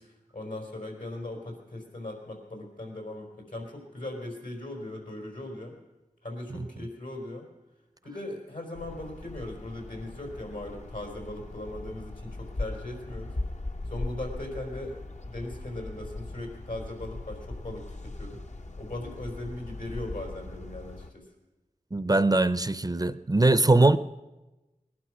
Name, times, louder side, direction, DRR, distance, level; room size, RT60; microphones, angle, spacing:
voice 1, 0.0-5.7 6.2-7.5 8.0-13.3 13.9-15.0 15.2-18.4 18.8-21.3, left 1 dB, 80° left, 1 dB, 4.1 m, -39 dB
sound 1, 8.7-21.1, left 2 dB, 55° left, 0.9 m, -39 dB
voice 2, 21.9-24.0, right 2 dB, 25° right, 13 dB, 0.5 m, -22 dB
20.0 x 11.5 x 6.1 m, 1.1 s
wide cardioid pair, 40°, 14 cm